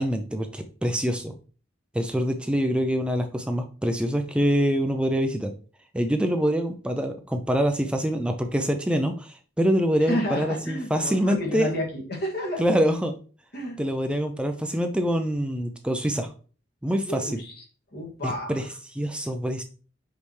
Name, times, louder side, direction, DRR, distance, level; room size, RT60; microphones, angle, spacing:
voice 1, 0.0-1.3 1.9-5.5 5.9-11.7 12.6-13.2 13.8-16.3 16.8-17.4 18.2-19.6, equal, 5° right, 5 dB, 0.4 m, -25 dB
voice 2, 10.1-12.6 13.5-13.8 17.1-17.6 17.9-18.5, left 1 dB, 60° left, 0 dB, 2.2 m, -30 dB
5.7 x 5.3 x 3.2 m, 0.39 s
head